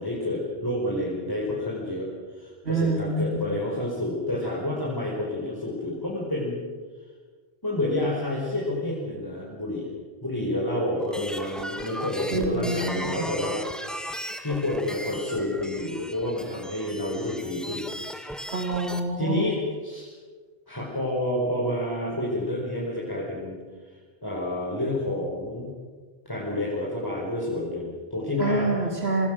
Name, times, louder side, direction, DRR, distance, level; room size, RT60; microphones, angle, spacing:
voice 1, 0.0-6.6 7.6-9.9 10.2-14.0 14.4-17.9 18.6-18.7 19.2-20.1 20.7-23.6 24.2-25.7 26.3-28.7, left 1 dB, 20° left, -4 dB, 5.1 m, -29 dB
voice 2, 2.6-3.4 12.3-13.3 18.5-19.4 28.4-29.3, right 3 dB, 85° right, 2 dB, 3.2 m, -27 dB
sound 1, 11.0-19.0, equal, ahead, 1.5 m, -37 dB
28.5 x 20.0 x 6.5 m, 1.5 s
omnidirectional pair, 1.1 m